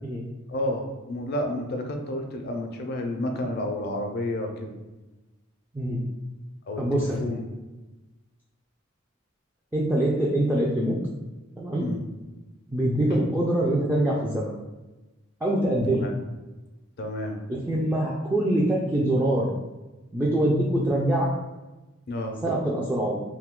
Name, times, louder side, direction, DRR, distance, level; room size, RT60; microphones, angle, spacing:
voice 1, 0.5-4.7 6.7-7.5 11.8-12.0 16.0-16.1 17.0-17.4 22.1-22.4, left 1 dB, 55° left, 3 dB, 0.5 m, -30 dB
voice 2, 6.8-7.3 9.7-11.0 11.6-11.8 12.7-14.5 15.4-16.1 17.5-19.5 20.1-21.3 22.4-23.2, right 1 dB, 10° right, -4 dB, 0.3 m, -24 dB
2.6 x 2.2 x 3.6 m, 1.1 s
head